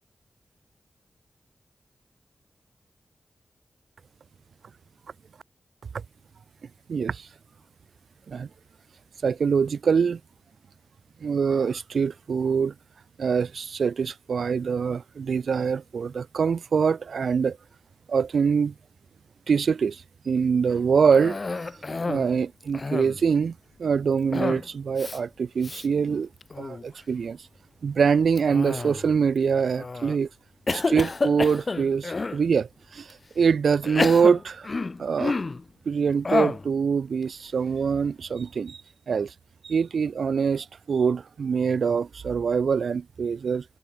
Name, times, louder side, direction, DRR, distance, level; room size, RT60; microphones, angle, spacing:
voice 1, 6.9-7.3 8.3-8.5 9.2-10.2 11.2-12.7 13.2-17.6 18.1-18.7 19.5-21.4 21.9-26.3 26.6-27.4 27.8-30.3 30.7-34.7 35.0-35.4 35.9-38.8 39.1-39.3 39.6-43.6, right 6 dB, 85° right, 2.2 m, -24 dB
Cough, 21.1-22.3 22.6-23.3 24.3-24.7 25.0-25.2 25.6-25.9 26.4-26.8 28.4-29.2 29.8-30.2 30.7-32.4 33.1-33.2 33.8-35.6 36.2-36.7, left 3 dB, 45° left, 3.6 m, -29 dB
cardioid pair, 60°, 0 cm